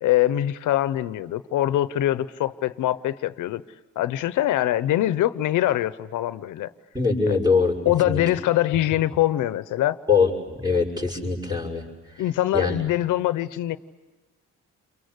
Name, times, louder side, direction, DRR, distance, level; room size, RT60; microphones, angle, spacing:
voice 1, 0.0-3.6 4.0-6.7 7.3-7.4 7.9-10.0 12.2-13.8, left 13 dB, 80° left, 14 dB, 0.9 m, -23 dB
voice 2, 6.9-7.8 8.0-8.2 10.1-12.2 12.5-12.7, left 5 dB, 15° right, 2 dB, 6.2 m, -23 dB
28.5 x 23.0 x 8.1 m, 1.2 s
cardioid pair, 90°, 30 cm